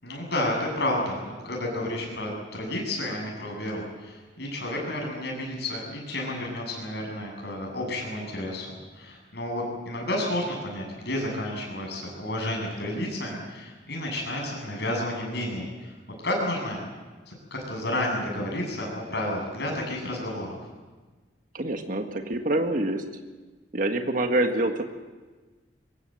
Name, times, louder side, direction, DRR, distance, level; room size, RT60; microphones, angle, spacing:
voice 1, 0.0-15.9 16.2-16.8 17.3-20.6, left 1 dB, 65° left, 0 dB, 7.9 m, -31 dB
voice 2, 21.5-23.0 23.7-24.8, right 1 dB, 50° right, 5 dB, 1.6 m, -26 dB
23.5 x 20.0 x 7.8 m, 1.3 s
head